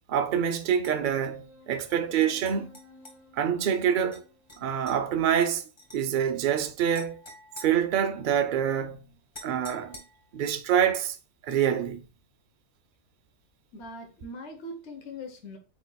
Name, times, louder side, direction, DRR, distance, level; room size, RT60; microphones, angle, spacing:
voice 1, 0.1-2.7 3.4-4.2 4.6-5.7 5.9-7.2 7.6-10.0 10.3-11.2 11.4-12.2, right 9 dB, 80° right, 0.4 m, -26 dB
sound 1, 0.8-1.0 1.9-3.2 4.1-4.2 4.5-5.0 5.8-6.0 6.9-8.4 9.3-10.4, left 1 dB, 20° left, 1.1 m, -48 dB
sound 2, 0.9-5.9, left 2 dB, 85° left, 1.7 m, -55 dB
voice 2, 13.7-15.6, left 1 dB, 55° left, 1.2 m, -41 dB
8.1 x 2.9 x 2.2 m
omnidirectional pair, 1.5 m